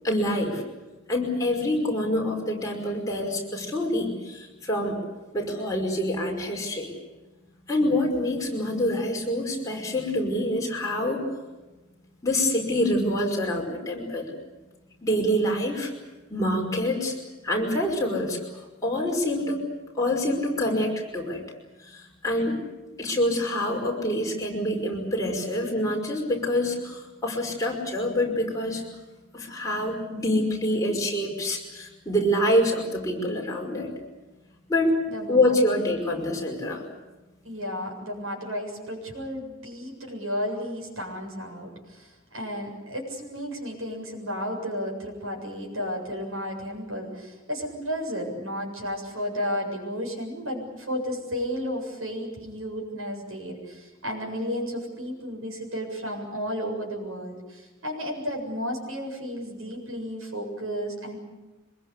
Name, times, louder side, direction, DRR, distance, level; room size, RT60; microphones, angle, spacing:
voice 1, 0.0-0.6 1.1-5.0 5.3-6.9 7.7-11.2 12.2-14.3 15.0-15.9 16.3-17.2 17.4-19.6 19.9-21.4 21.8-22.6 23.0-28.8 29.3-33.9 34.7-34.9 35.3-36.8, left 1 dB, 15° left, -1 dB, 5.5 m, -26 dB
voice 2, 35.1-35.8 37.4-61.2, equal, 85° right, 2 dB, 7.6 m, -33 dB
25.0 x 21.5 x 8.4 m, 1.1 s
head